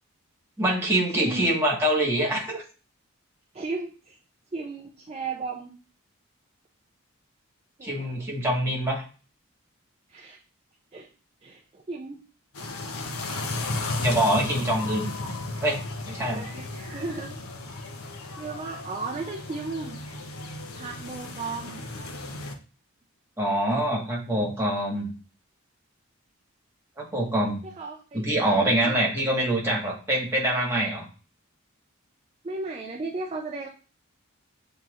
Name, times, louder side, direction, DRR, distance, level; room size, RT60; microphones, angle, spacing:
voice 1, 0.6-2.6 7.8-9.0 14.0-15.1 15.6-15.8 16.1-16.5 23.4-25.1 27.0-27.6 28.1-31.0, right 1 dB, 10° right, -3 dB, 1.4 m, -25 dB
voice 2, 1.1-1.5 3.5-4.2 4.5-5.8 7.8-8.3 10.1-10.4 10.9-11.1 11.4-12.2 16.3-17.4 18.4-20.0 20.7-21.8 27.6-29.0 32.4-33.7, right 3 dB, 30° right, 0 dB, 0.4 m, -35 dB
sound 1, 12.5-22.5, left 2 dB, 85° left, 0.7 m, -34 dB
7.5 x 2.9 x 2.4 m, 0.36 s
head